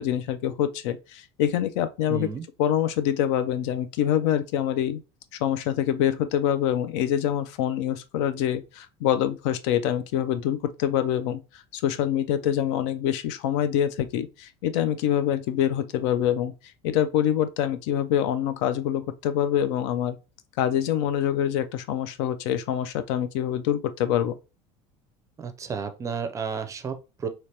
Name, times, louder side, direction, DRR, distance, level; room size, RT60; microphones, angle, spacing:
voice 1, 0.0-2.3 2.6-5.0 5.4-16.5 16.8-20.2 20.6-24.4, left 10 dB, 80° left, 0.4 m, -25 dB
voice 2, 2.1-2.4 25.4-27.3, right 6 dB, 20° right, 0.4 m, -32 dB
3.2 x 2.9 x 2.8 m
cardioid pair, 140°, 15 cm